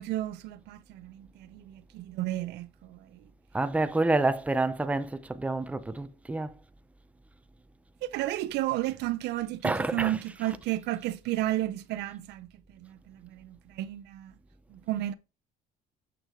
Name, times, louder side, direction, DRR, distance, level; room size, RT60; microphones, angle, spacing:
voice 1, 0.0-3.0 8.0-12.5 12.8-14.3 14.7-15.1, right 15 dB, 85° right, 0.6 m, -32 dB
voice 2, 3.5-6.5 9.6-10.6, right 2 dB, 10° right, 0.6 m, -28 dB
7.0 x 6.1 x 3.7 m
cardioid pair, 110°, 17 cm